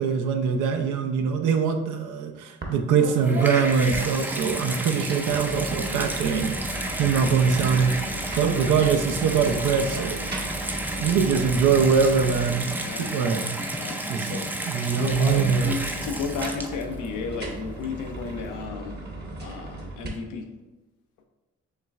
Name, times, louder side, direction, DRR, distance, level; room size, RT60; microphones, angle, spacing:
voice 1, 0.0-6.5 7.0-10.2 11.0-12.7 13.1-13.5 14.1-14.4 14.7-15.7, right 6 dB, 80° right, 5 dB, 0.6 m, -23 dB
sound 1, 2.6-2.8 3.0-4.6 5.0-13.0 14.8-20.1, right 2 dB, 35° right, 0.9 m, -37 dB
Water tap faucet / Bathtub (filling or washing), 3.0-17.1 17.8-17.9, right 1 dB, 5° right, 0.3 m, -31 dB
voice 2, 4.5-4.9 10.9-11.2 12.7-14.5 15.0-19.0 19.4-20.5, left 5 dB, 90° left, 4 dB, 0.6 m, -34 dB
5.6 x 3.1 x 2.4 m, 1.1 s
cardioid pair, 90°, 30 cm